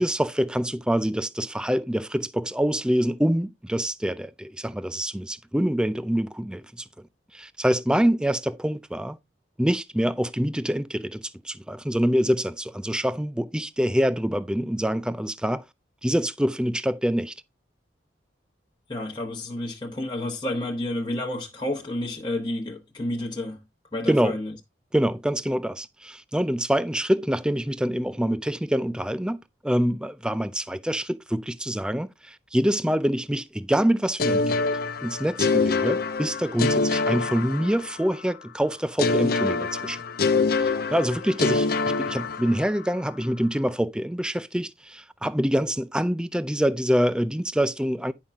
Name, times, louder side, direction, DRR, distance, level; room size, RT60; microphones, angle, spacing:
voice 1, 0.0-6.9 7.3-9.2 9.6-15.6 16.0-17.3 24.1-24.4 24.9-29.4 29.6-34.7 35.0-40.0 40.6-48.1, equal, 5° right, 0.4 m, -25 dB
voice 2, 18.9-23.6 23.9-24.5, left 1 dB, 25° left, 1.2 m, -30 dB
sound 1, 34.2-38.1 39.0-42.9, left 4 dB, 50° left, 0.7 m, -25 dB
10.5 x 5.6 x 3.5 m
head